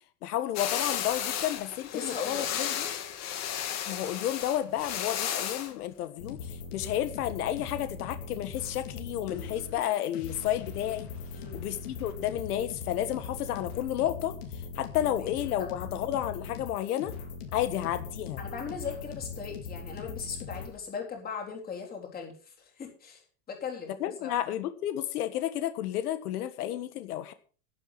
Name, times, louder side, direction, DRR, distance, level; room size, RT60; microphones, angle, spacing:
voice 1, 0.2-2.9 3.9-11.1 11.5-14.3 14.8-17.1 17.5-18.4 24.0-27.3, left 12 dB, 85° left, 11 dB, 1.6 m, -31 dB
sound 1, 0.5-5.7, left 9 dB, 35° left, 2.4 m, -33 dB
voice 2, 1.9-2.4 11.3-11.6 15.0-15.3 18.4-23.2 23.5-23.9 24.2-24.3, left 6 dB, 20° left, 1 dB, 3.8 m, -38 dB
sound 2, 6.2-20.7, left 5 dB, 55° left, 4.6 m, -40 dB
11.5 x 11.0 x 5.7 m, 0.40 s
supercardioid pair, 160°, 44 cm